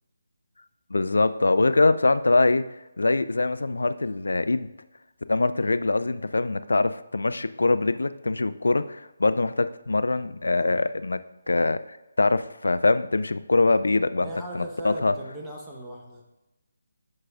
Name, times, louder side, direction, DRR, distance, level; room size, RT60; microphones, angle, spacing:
voice 1, 0.9-4.7 5.3-11.2 11.5-15.2, left 3 dB, 75° left, 13 dB, 0.4 m, -23 dB
voice 2, 10.5-10.8 14.2-16.2, right 1 dB, 5° right, -4 dB, 1.0 m, -38 dB
11.5 x 4.7 x 2.4 m, 1.0 s
figure-of-eight pair, 150°, 0 cm